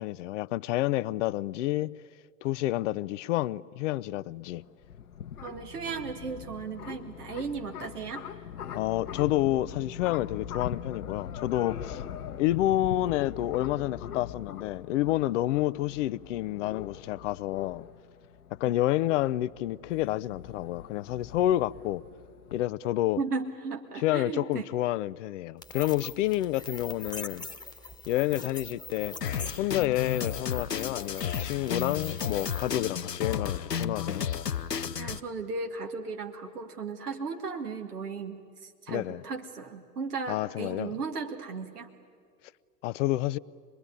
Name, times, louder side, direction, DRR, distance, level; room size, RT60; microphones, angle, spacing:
voice 1, 0.0-1.9 2.4-4.6 8.7-12.0 12.4-17.8 18.6-22.0 22.5-23.2 24.0-27.5 28.1-29.2 29.6-34.3 38.9-39.2 40.3-40.9 42.8-43.4, left 15 dB, 50° left, 0.6 m, -29 dB
sound 1, 4.5-22.6, left 9 dB, 70° left, 1.1 m, -42 dB
voice 2, 5.4-8.2 23.2-24.7 35.0-41.9, right 4 dB, 70° right, 2.2 m, -36 dB
sound 2, 25.6-32.8, left 3 dB, 10° left, 1.5 m, -43 dB
Drum kit, 29.2-35.2, left 8 dB, 85° left, 0.7 m, -33 dB
25.5 x 21.0 x 9.9 m
figure-of-eight pair, 85°, 47 cm